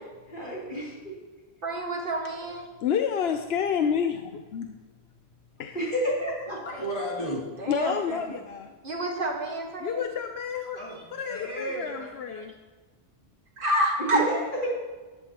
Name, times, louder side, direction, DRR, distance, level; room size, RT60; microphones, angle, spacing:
voice 1, 0.3-1.1 5.7-6.6 14.0-14.7, equal, 50° left, -6 dB, 3.7 m, -29 dB
voice 2, 1.6-2.7 7.6-8.2 8.8-10.0 13.6-14.3, right 1 dB, 55° right, 0 dB, 1.8 m, -28 dB
voice 3, 2.8-4.8 5.6-5.9 7.7-8.7 9.8-10.8 11.1-12.6, left 7 dB, 75° left, 6 dB, 0.9 m, -29 dB
voice 4, 6.5-7.4 10.7-12.4, equal, 35° left, -6 dB, 3.4 m, -34 dB
14.5 x 11.5 x 2.9 m, 1.3 s
omnidirectional pair, 1.1 m